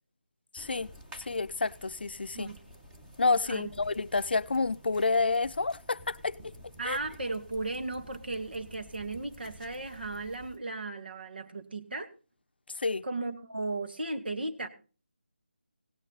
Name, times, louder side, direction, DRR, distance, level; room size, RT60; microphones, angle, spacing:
voice 1, 0.5-0.9 1.2-2.5 3.2-6.5 6.8-7.0 12.8-13.1, left 3 dB, 65° left, 0.6 m, -29 dB
sound 1, 0.6-10.6, equal, 5° right, 1.3 m, -52 dB
voice 2, 6.8-12.1 13.0-14.7, right 2 dB, 60° right, 2.2 m, -36 dB
17.0 x 9.9 x 4.0 m
figure-of-eight pair, 170°, 6 cm